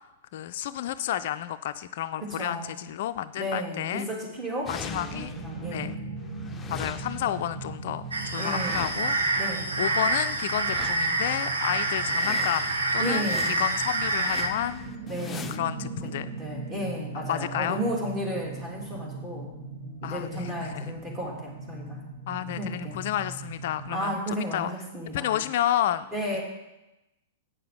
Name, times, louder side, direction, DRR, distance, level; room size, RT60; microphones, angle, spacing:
voice 1, 0.3-4.1 4.7-5.4 5.7-6.0 6.7-9.4 9.8-14.9 15.5-16.3 17.1-17.8 20.0-20.9 22.3-24.7 25.1-26.1, left 12 dB, 55° left, 12 dB, 0.4 m, -31 dB
voice 2, 2.2-2.8 3.4-5.9 8.4-9.0 9.3-9.7 13.0-13.6 15.1-15.7 16.4-19.5 20.0-22.0 22.6-23.0 23.9-25.4 26.1-26.4, equal, 20° right, -2 dB, 3.5 m, -33 dB
sound 1, 4.7-5.9 6.2-9.4 10.4-11.3 11.7-11.8 12.0-15.6, left 5 dB, 15° left, 0.6 m, -43 dB
sound 2, 4.7-24.0, right 3 dB, 50° right, 2.0 m, -40 dB
sound 3, 8.1-14.5, right 2 dB, 80° right, 1.2 m, -27 dB
8.6 x 6.7 x 7.1 m, 0.95 s
figure-of-eight pair, 105°, 0 cm